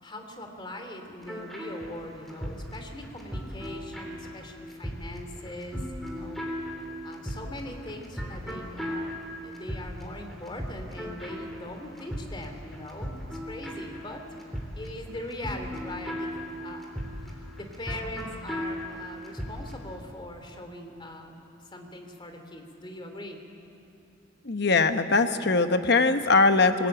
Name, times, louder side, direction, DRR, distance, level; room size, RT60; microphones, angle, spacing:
voice 1, 0.0-6.4 7.0-14.2 14.7-21.3 21.6-23.4, left 1 dB, 25° left, 5 dB, 2.8 m, -41 dB
sound 1, 1.2-19.8, equal, ahead, 3.5 m, -37 dB
voice 2, 24.4-26.9, left 3 dB, 60° left, 8 dB, 1.1 m, -21 dB
24.5 x 20.0 x 9.0 m, 2.8 s
head